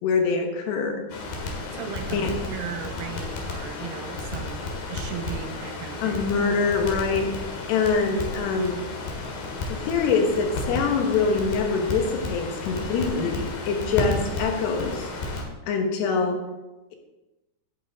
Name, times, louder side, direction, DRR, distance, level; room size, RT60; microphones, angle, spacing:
voice 1, 0.0-1.0 2.1-2.3 6.0-8.8 9.7-15.1 15.7-16.4, left 4 dB, 85° left, 3 dB, 3.4 m, -24 dB
Crackle, 1.1-15.4, left 3 dB, 70° left, 3.4 m, -32 dB
voice 2, 1.7-6.2, right 8 dB, 85° right, 5 dB, 3.0 m, -37 dB
11.0 x 8.7 x 3.6 m, 1.0 s
omnidirectional pair, 4.7 m